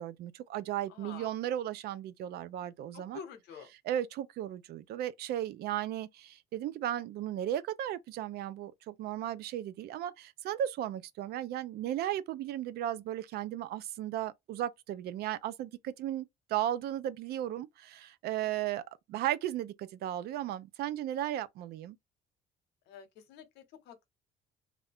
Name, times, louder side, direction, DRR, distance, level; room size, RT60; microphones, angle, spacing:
voice 1, 0.0-3.2 3.8-18.8 19.1-22.0, right 12 dB, 70° right, 0.4 m, -35 dB
voice 2, 0.9-1.3 2.9-3.7 22.9-24.1, left 7 dB, 85° left, 0.8 m, -48 dB
2.4 x 2.1 x 3.4 m
cardioid pair, 110°, 17 cm